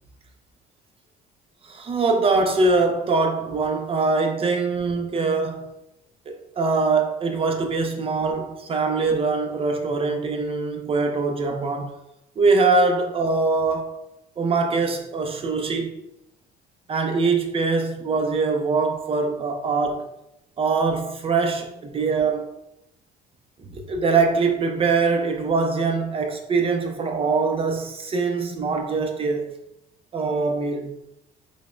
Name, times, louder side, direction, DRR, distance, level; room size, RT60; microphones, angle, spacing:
voice 1, 1.6-5.7 6.3-11.9 12.4-14.0 14.4-16.0 16.9-20.1 20.6-22.5 23.7-29.5 30.1-30.9, right 4 dB, 35° right, 0.4 m, -23 dB
5.0 x 2.0 x 2.4 m
cardioid pair, 110°, 17 cm